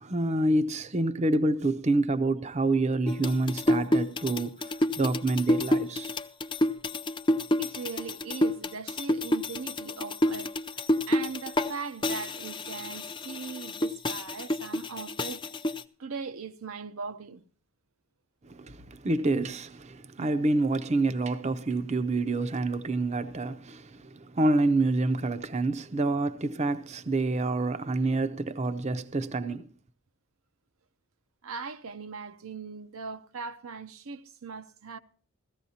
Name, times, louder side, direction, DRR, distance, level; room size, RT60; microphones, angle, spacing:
voice 1, 0.0-6.2 18.4-29.7, right 2 dB, 30° right, 0.6 m, -27 dB
sound 1, 3.1-11.7 12.0-15.8, left 1 dB, 20° left, 0.5 m, -28 dB
voice 2, 7.6-10.5 11.1-15.6 16.0-17.4 31.4-35.0, right 5 dB, 80° right, 0.7 m, -39 dB
16.5 x 14.0 x 2.8 m
head